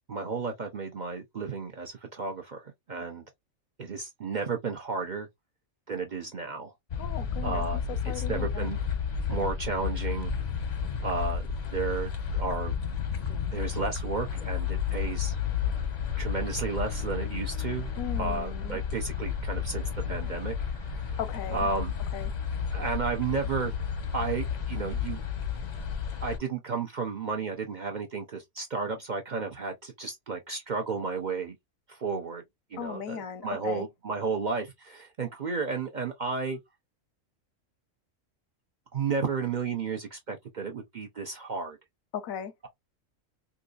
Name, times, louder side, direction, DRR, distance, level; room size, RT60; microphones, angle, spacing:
voice 1, 0.1-3.2 3.8-5.3 5.9-6.7 7.4-8.8 9.3-10.3 11.0-12.7 13.5-15.4 16.2-17.9 18.2-20.5 20.8-21.2 21.5-21.9 22.7-23.7 24.1-25.2 26.2-31.6 31.9-32.4 32.7-36.6 38.9-41.8, right 4 dB, 50° right, 0.6 m, -33 dB
sound 1, 6.9-26.4, left 7 dB, 45° left, 0.6 m, -32 dB
voice 2, 7.0-7.6 8.1-8.7 18.0-18.8 21.2-21.7 22.1-22.3 32.8-33.9 42.1-42.5, left 8 dB, 90° left, 1.1 m, -37 dB
3.8 x 2.5 x 2.4 m
omnidirectional pair, 1.4 m